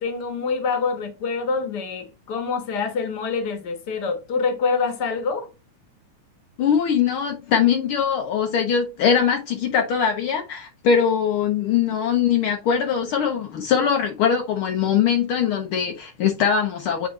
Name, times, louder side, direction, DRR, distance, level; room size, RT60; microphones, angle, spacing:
voice 1, 0.0-5.5, left 5 dB, 55° left, 1.2 m, -26 dB
voice 2, 6.6-17.1, left 7 dB, 85° left, 1.2 m, -21 dB
8.5 x 3.6 x 3.2 m
omnidirectional pair, 3.5 m